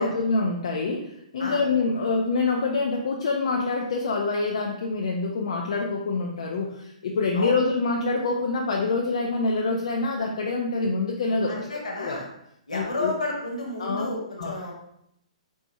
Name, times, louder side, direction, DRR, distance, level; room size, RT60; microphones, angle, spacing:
voice 1, 0.0-11.7 12.0-12.2 12.7-13.1 13.8-14.1 14.4-14.5, left 3 dB, 60° left, 0 dB, 0.5 m, -26 dB
voice 2, 11.5-12.3 12.7-14.7, left 2 dB, 75° left, -1 dB, 1.2 m, -31 dB
4.3 x 4.2 x 2.3 m, 0.77 s
figure-of-eight pair, 120°, 4 cm